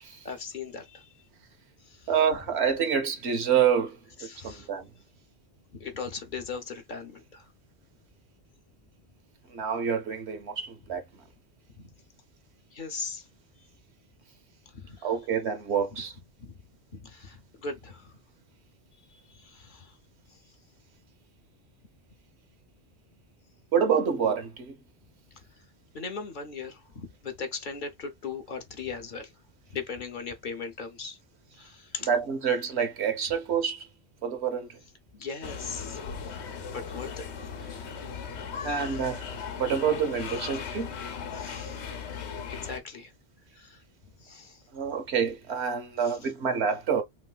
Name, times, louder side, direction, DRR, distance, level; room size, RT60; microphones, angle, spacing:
voice 1, 0.2-1.1 1.9-2.1 4.2-4.7 5.7-7.5 11.7-11.9 12.7-13.3 14.7-15.1 16.4-16.5 16.9-18.1 19.1-20.0 20.3-20.4 25.9-29.3 29.7-31.2 31.5-32.1 35.1-36.4 36.7-37.3 37.6-37.9 38.5-39.0 41.3-41.9 42.5-43.1 43.5-43.8 44.2-44.6 46.0-46.3, left 5 dB, 50° left, 0.8 m, -39 dB
voice 2, 2.1-4.0 4.4-4.9 9.5-11.0 15.0-16.1 23.7-24.8 32.1-33.9 34.2-34.7 38.6-39.3 39.6-40.9 44.7-47.0, right 7 dB, 75° right, 1.1 m, -27 dB
sound 1, 35.4-42.8, left 6 dB, 80° left, 1.1 m, -37 dB
3.1 x 3.1 x 2.2 m
omnidirectional pair, 1.1 m